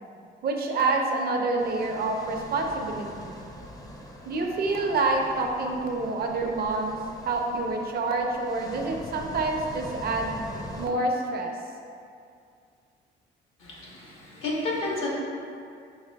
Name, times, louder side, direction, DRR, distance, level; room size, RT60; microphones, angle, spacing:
voice 1, 0.4-3.3 4.3-7.0 7.3-10.4 10.8-11.5, right 3 dB, 50° right, 2 dB, 0.5 m, -27 dB
sound 1, 1.6-10.9, left 1 dB, 20° left, 0.4 m, -43 dB
voice 2, 13.6-15.1, left 2 dB, 85° left, -5 dB, 1.0 m, -31 dB
4.8 x 3.2 x 2.2 m, 2.4 s
cardioid pair, 90°, 20 cm